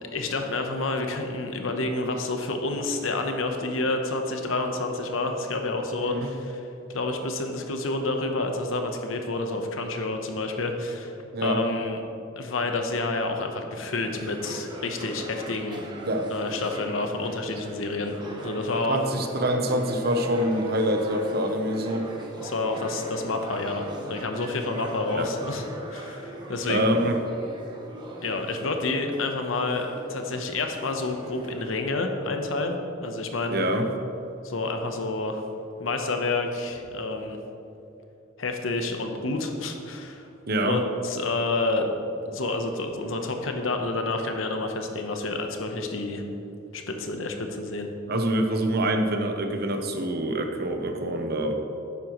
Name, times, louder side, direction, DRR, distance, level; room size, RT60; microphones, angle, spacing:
voice 1, 0.1-12.0 12.4-15.8 16.3-18.1 18.4-19.0 22.4-27.0 28.2-33.6 34.4-35.4 35.8-37.4 38.4-40.3 40.6-41.9 42.3-46.2 46.7-47.9, left 2 dB, 80° left, 4 dB, 1.0 m, -29 dB
sound 1, 14.0-31.7, right 1 dB, 25° right, 1.1 m, -40 dB
voice 2, 18.9-22.1 25.1-25.3 26.7-27.1 33.5-33.9 40.5-40.8 48.1-51.5, right 1 dB, 50° right, 5 dB, 0.8 m, -25 dB
11.0 x 8.9 x 3.1 m, 2.8 s
head